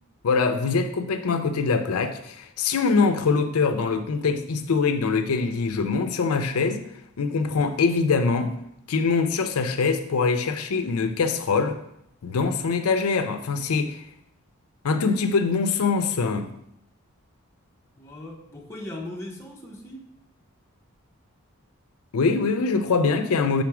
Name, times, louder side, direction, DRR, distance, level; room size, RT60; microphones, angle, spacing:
voice 1, 0.2-6.9 7.2-8.6 8.9-11.8 12.2-14.0 14.8-16.5 22.1-23.6, left 4 dB, 80° left, 8 dB, 0.5 m, -23 dB
voice 2, 18.0-20.1, left 1 dB, 10° left, -1 dB, 0.8 m, -38 dB
5.9 x 3.8 x 4.8 m, 0.77 s
head